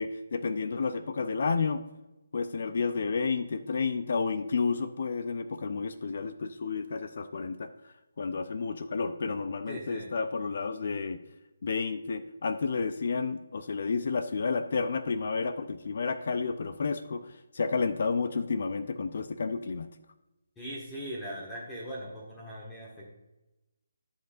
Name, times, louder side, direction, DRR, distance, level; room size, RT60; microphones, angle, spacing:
voice 1, 0.0-1.8 2.3-7.7 8.2-11.2 11.6-19.9, left 4 dB, 55° left, 11 dB, 0.5 m, -31 dB
voice 2, 9.7-10.2 20.6-23.0, equal, 10° left, -5 dB, 1.5 m, -40 dB
13.0 x 5.5 x 2.5 m, 0.99 s
figure-of-eight pair, 145°, 0 cm